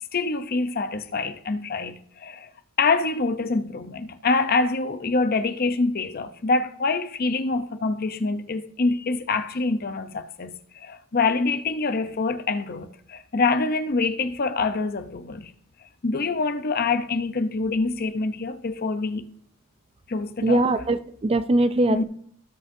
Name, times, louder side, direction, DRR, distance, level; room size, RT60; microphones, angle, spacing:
voice 1, 0.1-2.5 2.8-15.5 16.0-19.2 20.1-20.6 21.9-22.0, left 3 dB, 45° left, 0.7 m, -25 dB
voice 2, 20.4-22.0, right 2 dB, 25° right, 0.4 m, -21 dB
17.5 x 6.2 x 2.7 m
head